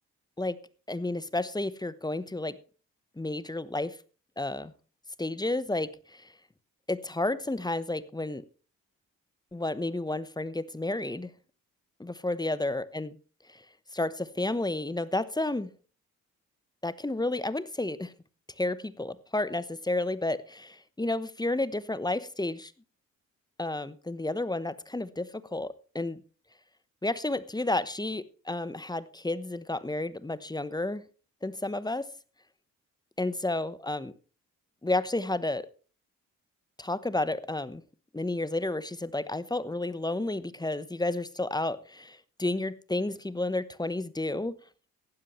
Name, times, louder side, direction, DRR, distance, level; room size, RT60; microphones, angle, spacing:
voice 1, 0.9-2.6 3.2-4.0 4.4-4.7 5.2-6.3 6.9-8.4 9.5-11.3 12.0-13.2 13.5-13.6 13.9-15.7 16.8-18.1 18.6-22.7 23.6-26.2 27.0-31.0 31.4-32.1 33.2-34.1 34.8-35.7 36.8-37.8 38.1-44.6, left 2 dB, 10° left, 16 dB, 1.0 m, -31 dB
15.5 x 11.0 x 3.2 m, 0.36 s
supercardioid pair, 50°, 36 cm